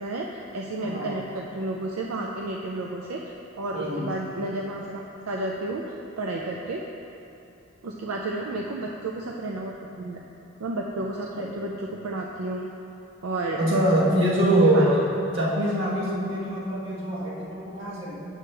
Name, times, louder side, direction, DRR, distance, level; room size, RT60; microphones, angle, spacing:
voice 1, 0.0-3.2 3.6-6.8 7.8-10.2 10.6-12.7 13.2-13.6 14.5-14.9, right 2 dB, 85° right, -1 dB, 0.5 m, -32 dB
voice 2, 0.8-1.2 3.7-4.1 11.4-11.5 13.6-15.0 15.3-18.2, right 1 dB, 60° right, -6 dB, 1.5 m, -23 dB
7.5 x 6.4 x 3.3 m, 2.8 s
head